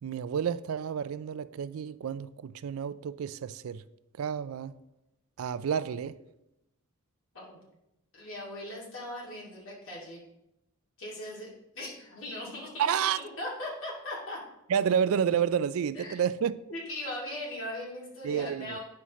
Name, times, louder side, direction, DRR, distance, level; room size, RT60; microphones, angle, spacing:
voice 1, 0.0-3.8 4.2-4.7 5.4-6.2 12.8-13.2 14.7-16.5 18.2-18.8, right 8 dB, 70° right, 0.3 m, -30 dB
voice 2, 8.1-10.2 11.0-11.5 11.7-14.4 15.9-16.1 16.7-18.8, left 1 dB, 65° left, 2.3 m, -39 dB
9.6 x 5.7 x 3.1 m
head